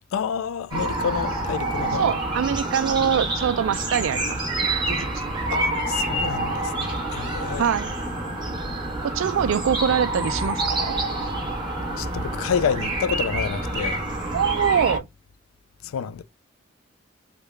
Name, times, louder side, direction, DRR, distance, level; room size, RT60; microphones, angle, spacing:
voice 1, 0.1-2.1 5.5-7.6 11.9-14.0 15.8-16.2, left 7 dB, 90° left, 0.3 m, -29 dB
sound 1, 0.7-15.0, right 2 dB, 20° right, 1.0 m, -27 dB
voice 2, 2.0-5.2 7.6-7.9 9.0-11.0 14.3-15.1, right 8 dB, 70° right, 0.3 m, -24 dB
3.5 x 2.2 x 3.1 m
head